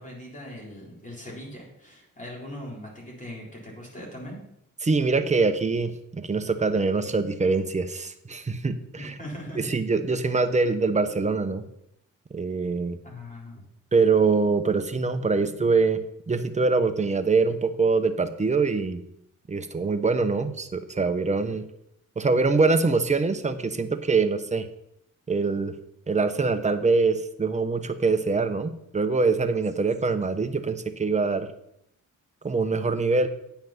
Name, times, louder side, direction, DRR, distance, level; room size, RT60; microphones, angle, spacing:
voice 1, 0.0-4.4 9.0-9.7 13.0-13.6, left 1 dB, 25° left, -3 dB, 3.9 m, -40 dB
voice 2, 4.8-9.1 9.6-11.6 12.3-13.0 13.9-16.0 16.3-19.0 19.5-21.6 22.2-24.7 25.3-25.7 26.1-31.5 32.4-33.3, right 4 dB, 20° right, 8 dB, 0.9 m, -24 dB
9.2 x 5.8 x 5.8 m, 0.77 s
cardioid pair, 90°, 32 cm